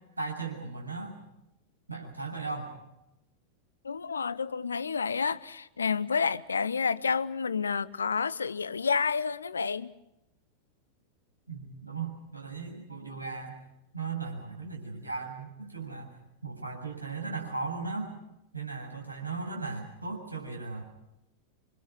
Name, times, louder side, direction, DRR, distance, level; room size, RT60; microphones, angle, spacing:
voice 1, 0.2-1.2 1.9-2.7 11.5-13.6 13.9-16.1 16.4-18.1 18.5-20.8, right 4 dB, 80° right, 7.5 m, -37 dB
voice 2, 3.8-9.9, left 5 dB, 75° left, 0.9 m, -29 dB
27.5 x 26.0 x 6.2 m
figure-of-eight pair, 90°, 0 cm